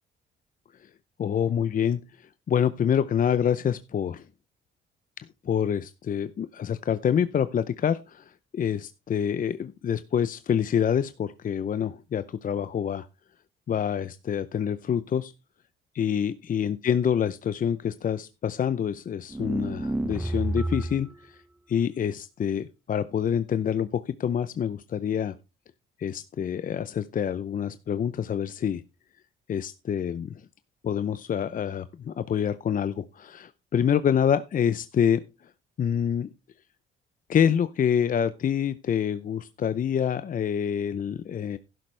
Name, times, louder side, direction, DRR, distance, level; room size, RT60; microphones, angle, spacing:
voice 1, 1.2-2.0 2.5-4.2 5.4-13.1 13.7-15.3 15.9-21.4 21.7-25.3 26.0-28.8 29.5-30.4 30.8-35.2 35.8-36.3 37.3-41.6, left 8 dB, 45° left, 14 dB, 0.6 m, -26 dB
sound 1, 19.3-21.1, right 1 dB, 10° right, 0.7 m, -29 dB
12.0 x 11.0 x 3.3 m, 0.28 s
cardioid pair, 90°, 20 cm